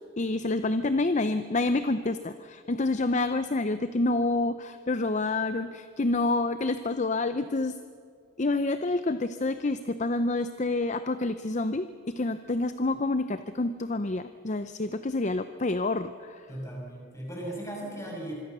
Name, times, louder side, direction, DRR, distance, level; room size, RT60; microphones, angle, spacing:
voice 1, 0.2-7.8 8.4-16.5, left 2 dB, 35° left, 11 dB, 0.6 m, -28 dB
voice 2, 16.5-18.3, right 1 dB, 15° left, -1 dB, 6.5 m, -37 dB
26.0 x 22.5 x 6.8 m, 2.2 s
head